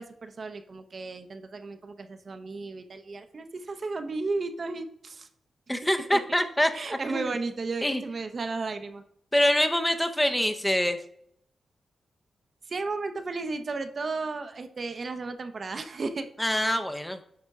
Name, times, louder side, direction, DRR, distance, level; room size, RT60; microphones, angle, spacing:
voice 1, 0.0-5.3 6.1-6.2 6.7-9.0 12.7-16.3, right 3 dB, 50° right, 8 dB, 0.7 m, -34 dB
voice 2, 5.7-7.3 7.8-8.0 9.3-11.0 16.4-17.2, equal, 5° left, 8 dB, 0.7 m, -25 dB
9.5 x 4.3 x 3.6 m, 0.69 s
cardioid pair, 90°, 0 cm